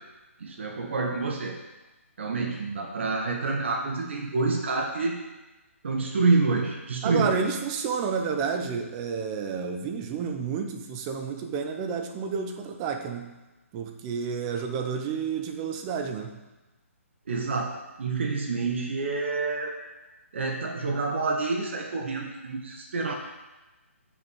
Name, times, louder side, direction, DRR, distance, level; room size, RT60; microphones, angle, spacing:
voice 1, 0.4-1.5 2.2-5.2 5.8-7.4 17.3-19.8 20.3-23.1, right 3 dB, 55° right, 1 dB, 1.2 m, -27 dB
voice 2, 7.0-13.3 13.7-16.3, right 6 dB, 25° right, 4 dB, 0.8 m, -30 dB
6.4 x 6.1 x 6.4 m, 1.1 s
figure-of-eight pair, 140°, 8 cm